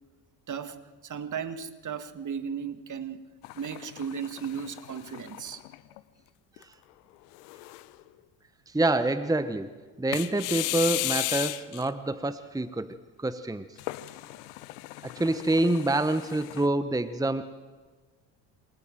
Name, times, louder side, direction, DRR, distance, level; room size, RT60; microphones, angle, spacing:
voice 1, 0.5-3.3 3.6-5.6, right 7 dB, 40° right, 2.2 m, -36 dB
sound 1, 3.4-6.0 6.6-6.7 7.3-8.0 10.1-11.9 13.8-16.7, left 20 dB, 75° left, 1.2 m, -35 dB
voice 2, 8.7-9.7 10.0-13.7 15.0-17.4, right 2 dB, 10° right, 1.2 m, -27 dB
27.5 x 27.5 x 7.7 m
hypercardioid pair, 65°, 47 cm